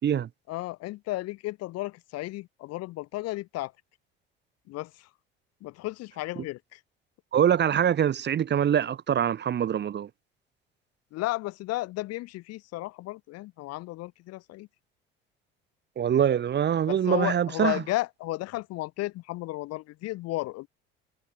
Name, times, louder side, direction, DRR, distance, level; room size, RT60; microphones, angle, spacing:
voice 1, 0.5-3.7 4.7-5.1 5.6-6.8 11.1-14.7 16.9-20.7, left 18 dB, 55° left, 4.3 m, -33 dB
voice 2, 7.3-10.1 16.0-17.8, right 9 dB, 35° right, 1.6 m, -24 dB
figure-of-eight pair, 60°, 30 cm